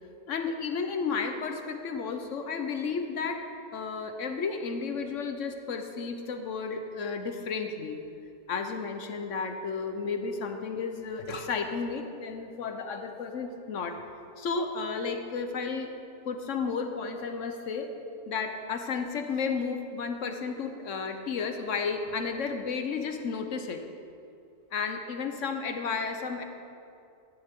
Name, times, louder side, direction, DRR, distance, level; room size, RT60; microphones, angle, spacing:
voice 1, 0.3-3.5 3.7-8.0 8.5-14.0 14.4-15.9 16.3-17.9 18.3-23.8 24.7-26.4, left 5 dB, 80° left, 6 dB, 1.3 m, -32 dB
17.0 x 12.0 x 3.7 m, 2.6 s
omnidirectional pair, 1.3 m